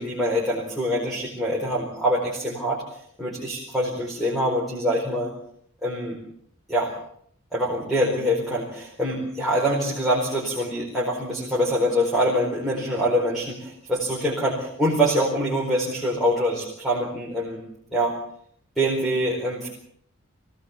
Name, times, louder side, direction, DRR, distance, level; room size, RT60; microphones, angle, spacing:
voice 1, 0.0-5.3 5.8-6.2 6.7-6.9 7.5-17.6 17.9-18.1 18.8-19.7, equal, ahead, -6 dB, 4.6 m, -24 dB
24.0 x 18.0 x 7.3 m, 0.66 s
head